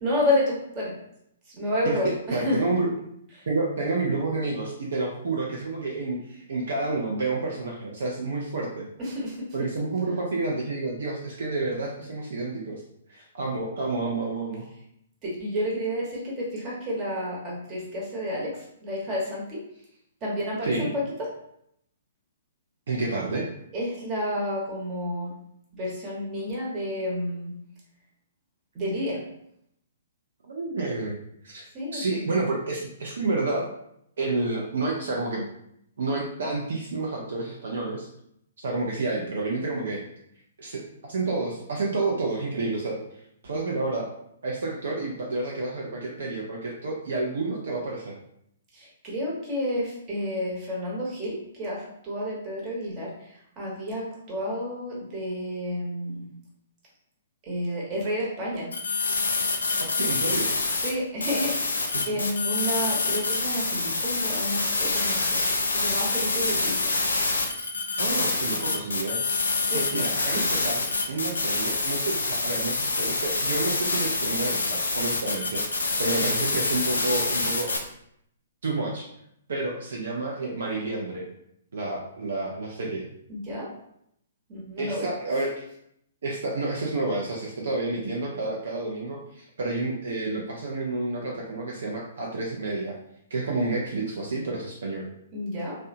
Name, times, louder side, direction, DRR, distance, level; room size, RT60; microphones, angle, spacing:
voice 1, 0.0-0.9 1.5-2.6 3.3-3.4 9.0-9.4 15.2-19.6 20.2-21.3 23.7-25.3 25.7-27.5 28.7-29.2 31.7-32.0 48.7-56.4 57.5-58.7 60.8-61.8 62.0-66.9 69.7-70.0 70.3-70.5 83.3-83.7 84.5-85.1 95.3-95.8, left 1 dB, 25° right, -4 dB, 0.9 m, -30 dB
voice 2, 1.8-2.9 3.5-8.9 9.5-12.8 13.1-14.6 20.6-20.9 22.9-23.5 30.5-31.2 31.4-31.6 31.9-33.6 34.2-35.4 36.0-38.1 38.6-40.0 40.6-43.0 43.4-44.1 44.4-48.1 60.0-60.5 61.9-62.2 68.0-69.2 69.7-77.7 78.6-79.1 79.5-81.3 81.7-83.1 84.8-85.6 86.2-92.9 93.3-95.1, right 3 dB, 65° right, -2 dB, 0.4 m, -29 dB
sound 1, 58.7-60.9 61.2-77.8, left 3 dB, 75° left, 0.4 m, -26 dB
2.6 x 2.1 x 2.5 m, 0.74 s
figure-of-eight pair, 120°, 0 cm